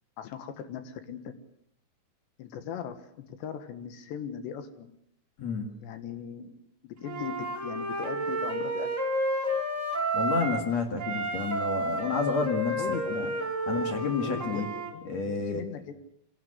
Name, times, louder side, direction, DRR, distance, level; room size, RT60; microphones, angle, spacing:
voice 1, 0.2-1.3 2.4-4.9 5.8-6.6 6.8-9.0 12.8-13.5 14.2-15.9, left 8 dB, 75° left, 9 dB, 3.7 m, -39 dB
voice 2, 5.4-5.7 10.1-13.3 13.7-14.7 15.1-15.6, left 5 dB, 45° left, 5 dB, 2.6 m, -30 dB
Wind instrument woodwind instrument, 7.0-10.7 11.0-14.9, right 1 dB, 20° right, 3.1 m, -31 dB
24.5 x 17.5 x 8.1 m, 0.72 s
omnidirectional pair, 5.2 m